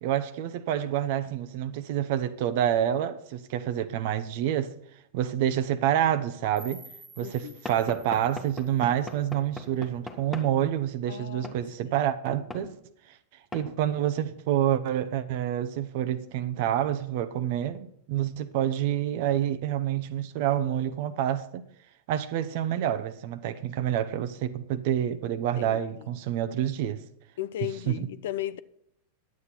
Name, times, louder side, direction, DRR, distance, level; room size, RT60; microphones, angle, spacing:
voice 1, 0.0-4.8 5.1-6.8 7.2-12.8 13.1-13.2 13.5-21.7 22.1-27.0 27.9-28.1, right 11 dB, 50° right, 0.8 m, -28 dB
sound 1, 6.6-9.6, right 2 dB, 10° right, 1.3 m, -52 dB
voice 2, 7.2-7.5 11.1-11.6 11.8-12.0 25.6-26.2 27.4-28.6, left 13 dB, 55° left, 0.5 m, -36 dB
Knock / Wood, 7.7-10.5 11.4-11.6 12.5-12.7 13.5-13.7, left 2 dB, 10° left, 1.2 m, -40 dB
11.0 x 8.4 x 4.3 m
figure-of-eight pair, 90°, 0 cm